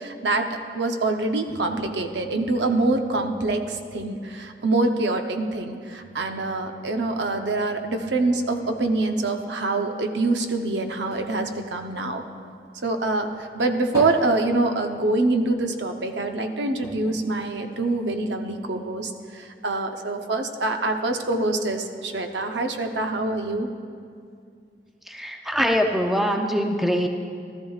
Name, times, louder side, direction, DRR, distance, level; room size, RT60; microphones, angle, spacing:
voice 1, 0.0-12.2 12.8-23.7, right 2 dB, 85° right, 5 dB, 0.7 m, -25 dB
sound 1, 10.2-12.8 13.2-15.5 15.8-15.9 16.2-16.3 16.8-18.3 18.9-19.0, equal, 20° right, 1.7 m, -40 dB
voice 2, 25.1-27.1, equal, ahead, 3 dB, 0.5 m, -23 dB
14.5 x 13.0 x 2.4 m, 2.3 s
head